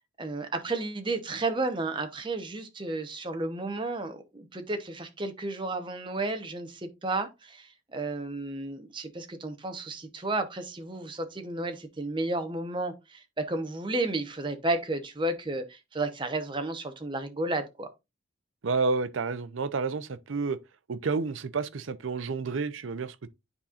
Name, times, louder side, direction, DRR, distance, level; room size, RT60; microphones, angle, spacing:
voice 1, 0.2-17.9, right 2 dB, 25° right, 0.8 m, -32 dB
voice 2, 18.6-20.6 20.9-23.3, right 4 dB, 70° right, 0.6 m, -30 dB
9.8 x 4.2 x 2.4 m
head